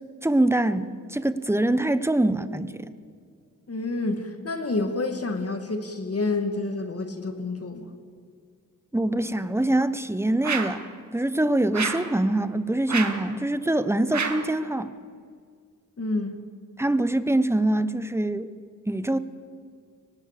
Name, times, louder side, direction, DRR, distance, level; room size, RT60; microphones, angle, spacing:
voice 1, 0.2-2.9 8.9-10.8 11.1-14.9 16.8-18.5 18.9-19.2, right 1 dB, 10° right, 13 dB, 1.0 m, -24 dB
voice 2, 3.7-7.9 16.0-16.4, left 3 dB, 45° left, 7 dB, 2.3 m, -29 dB
sound 1, 10.4-10.9 11.7-12.1 12.9-13.3 14.1-14.5, right 5 dB, 60° right, 1.8 m, -29 dB
23.5 x 19.0 x 6.9 m, 2.2 s
cardioid pair, 75°, 32 cm